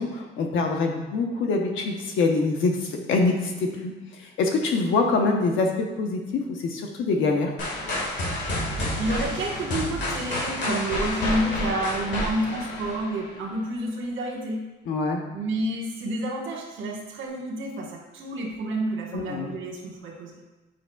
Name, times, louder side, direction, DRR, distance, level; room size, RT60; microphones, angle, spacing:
voice 1, 0.0-3.9 4.2-7.5 14.9-15.2 19.1-19.5, left 3 dB, 80° left, 3 dB, 0.9 m, -25 dB
sound 1, 7.6-13.5, left 1 dB, 65° left, 1.8 m, -29 dB
voice 2, 9.0-14.6 15.3-20.4, right 1 dB, 75° right, 0 dB, 1.3 m, -29 dB
7.7 x 5.4 x 2.3 m, 1.1 s
cardioid pair, 90°, 20 cm